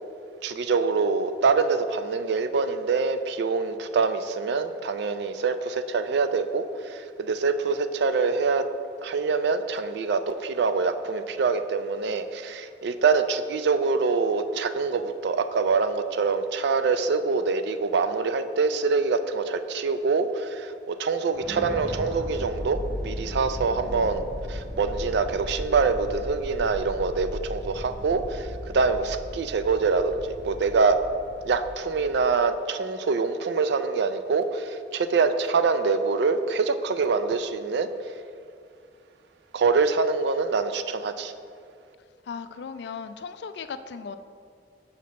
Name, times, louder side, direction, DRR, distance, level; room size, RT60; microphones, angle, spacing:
voice 1, 0.4-8.6 9.0-24.2 24.5-31.0 31.4-37.9 39.5-41.3, right 4 dB, 70° right, 10 dB, 0.4 m, -25 dB
sound 1, 21.3-32.4, equal, 5° right, 1.0 m, -36 dB
voice 2, 42.2-44.2, left 5 dB, 70° left, 11 dB, 0.4 m, -37 dB
5.9 x 4.1 x 6.3 m, 2.4 s
head